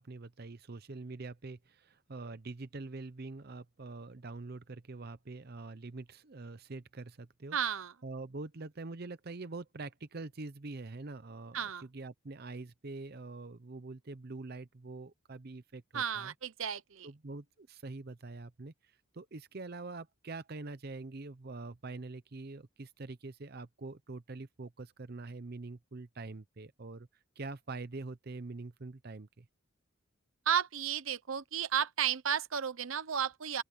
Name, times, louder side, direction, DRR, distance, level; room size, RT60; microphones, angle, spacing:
voice 1, 0.0-7.6 8.0-16.3 17.0-27.1 27.4-29.5, right 3 dB, 45° right, 0.7 m, -44 dB
voice 2, 7.5-7.9 11.5-11.8 15.9-17.1 30.5-33.6, right 8 dB, 75° right, 0.9 m, -33 dB
open air
head